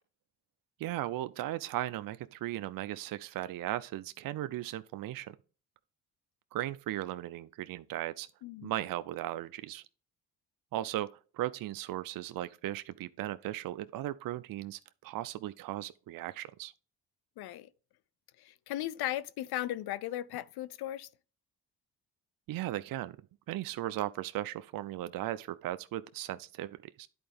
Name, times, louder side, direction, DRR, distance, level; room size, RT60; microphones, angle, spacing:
voice 1, 0.8-5.4 6.5-8.3 8.6-9.8 10.7-11.1 11.3-16.7 22.5-23.2 23.5-27.1, right 14 dB, 60° right, 0.5 m, -37 dB
voice 2, 17.4-17.7 18.4-21.1, left 14 dB, 75° left, 0.6 m, -36 dB
10.0 x 4.3 x 3.5 m
supercardioid pair, 65°, 39 cm